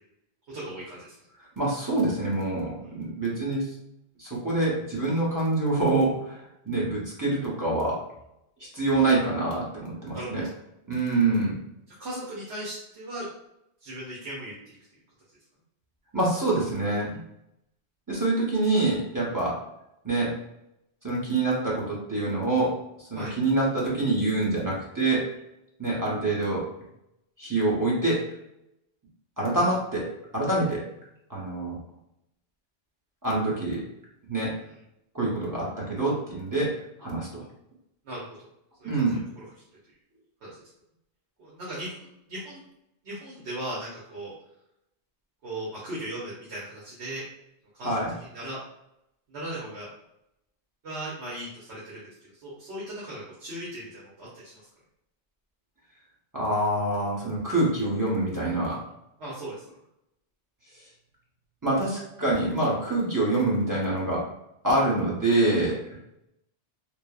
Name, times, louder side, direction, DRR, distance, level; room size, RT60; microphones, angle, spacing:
voice 1, 0.5-1.1 10.1-10.5 12.0-13.3 13.8-14.8 23.1-23.3 38.0-38.2 38.8-39.4 40.4-40.5 41.4-41.9 42.3-42.6 43.0-44.3 45.4-47.2 47.7-48.0 48.3-48.6 49.3-49.9 50.8-54.6 59.2-59.6, right 1 dB, 70° right, -7 dB, 1.0 m, -37 dB
voice 2, 1.6-3.7 4.2-8.0 8.7-10.4 10.9-11.6 16.1-17.2 18.1-19.6 20.0-20.3 21.0-25.2 25.8-26.6 27.4-28.2 29.4-30.1 30.3-30.8 31.3-31.8 33.2-33.8 34.3-34.5 35.1-36.7 37.0-37.4 38.8-39.2 47.8-48.1 56.3-58.8 61.6-64.2 64.6-65.8, right 2 dB, 25° right, -6 dB, 0.5 m, -26 dB
3.1 x 2.0 x 2.2 m, 0.82 s
omnidirectional pair, 1.2 m